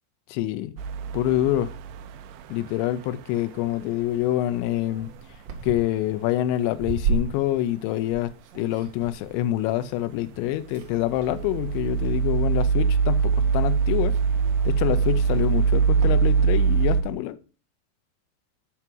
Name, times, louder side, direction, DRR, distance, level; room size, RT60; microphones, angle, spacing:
voice 1, 0.4-0.7 1.1-1.7 2.5-5.1 5.6-14.2 14.7-17.4, left 13 dB, 90° left, 2.9 m, -26 dB
sound 1, 0.8-2.3 10.9-17.0, right 6 dB, 85° right, 2.2 m, -22 dB
sound 2, 3.5-10.4 10.7-11.4 12.3-12.7 13.2-13.3 13.5-16.7, right 5 dB, 60° right, 1.8 m, -35 dB
9.6 x 5.9 x 4.4 m
omnidirectional pair, 5.2 m